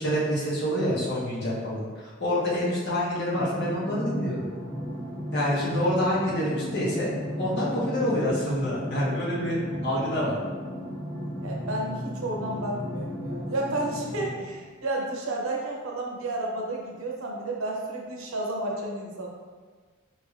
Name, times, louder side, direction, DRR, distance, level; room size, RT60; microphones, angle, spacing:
voice 1, 0.0-4.5 5.3-7.1 7.4-10.4, equal, 55° left, -7 dB, 1.2 m, -27 dB
sound 1, 3.3-14.4, equal, 5° left, 0.9 m, -34 dB
voice 2, 11.4-19.3, right 2 dB, 85° right, -1 dB, 0.8 m, -31 dB
4.8 x 3.3 x 2.4 m, 1.5 s
head